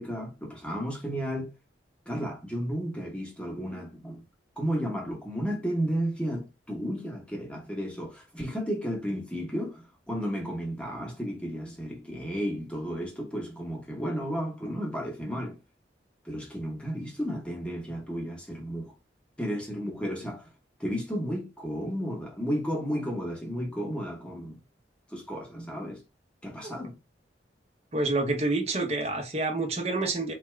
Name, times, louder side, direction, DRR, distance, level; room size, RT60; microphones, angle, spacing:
voice 1, 0.0-1.5 2.1-4.2 4.6-15.6 16.2-18.9 19.4-20.5 20.8-24.6 25.1-26.0 26.4-26.9, equal, 5° left, 0.9 m, -33 dB
voice 2, 27.9-30.3, right 2 dB, 35° right, 0.8 m, -28 dB
4.1 x 2.3 x 3.1 m
head